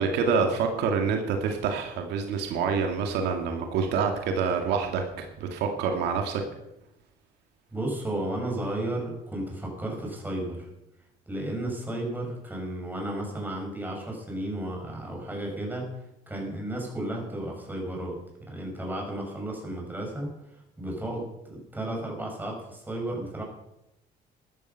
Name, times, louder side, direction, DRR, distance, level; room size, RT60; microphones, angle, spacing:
voice 1, 0.0-6.4, right 5 dB, 85° right, 4 dB, 2.1 m, -27 dB
voice 2, 7.7-10.7 11.3-15.9 16.3-18.2 18.5-20.3 20.8-23.4, right 1 dB, 10° right, 0 dB, 6.1 m, -33 dB
14.5 x 12.5 x 5.7 m, 0.87 s
cardioid pair, 110°, 17 cm